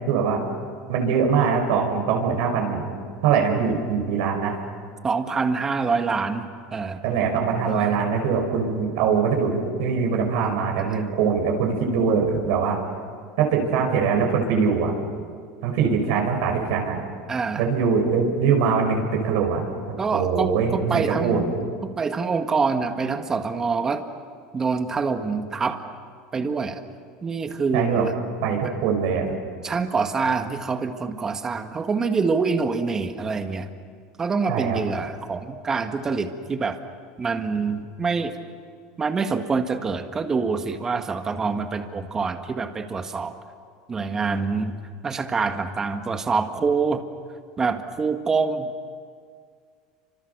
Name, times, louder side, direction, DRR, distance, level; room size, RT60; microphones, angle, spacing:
voice 1, 0.1-0.4 0.9-2.9 3.2-4.6 7.0-12.8 13.4-14.9 15.6-17.0 17.6-19.6 20.1-21.4 27.7-28.0 28.4-29.3 34.5-34.8, right 6 dB, 70° right, 1 dB, 5.3 m, -22 dB
voice 2, 5.0-7.0 7.6-7.9 10.8-11.0 17.3-17.6 20.0-21.5 21.8-24.1 24.5-25.8 26.3-26.8 27.2-28.2 28.6-28.7 29.6-33.7 34.2-36.8 37.2-38.3 39.0-43.3 43.9-44.8 45.0-47.1 47.6-48.7, right 4 dB, 20° right, 7 dB, 1.8 m, -25 dB
29.5 x 26.0 x 6.8 m, 2.1 s
supercardioid pair, 135°, 3 cm